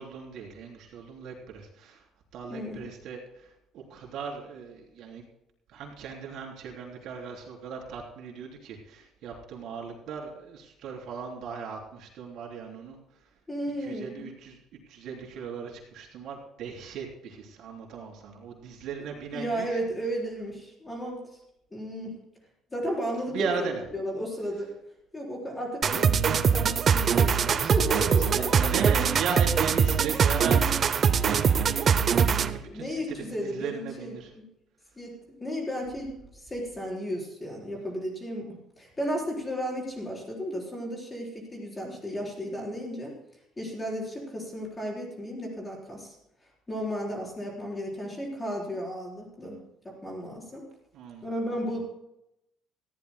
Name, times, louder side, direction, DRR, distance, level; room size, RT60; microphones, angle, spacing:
voice 1, 0.0-2.0 2.3-5.2 5.7-13.0 13.8-14.6 14.9-19.8 23.3-23.8 27.8-34.3 50.9-51.2 51.7-51.8, right 6 dB, 60° right, 0 dB, 3.6 m, -37 dB
voice 2, 2.5-2.9 13.5-14.1 19.3-21.2 21.7-22.2 22.7-24.7 25.1-28.7 29.0-29.2 31.2-31.3 32.7-34.4 35.0-43.1 43.6-46.1 46.7-49.6 49.8-50.6 51.2-51.8, equal, 15° left, -2 dB, 4.1 m, -34 dB
sound 1, 25.8-32.6, right 6 dB, 30° right, 0.6 m, -23 dB
19.5 x 15.0 x 2.2 m, 0.84 s
cardioid pair, 170°, 0 cm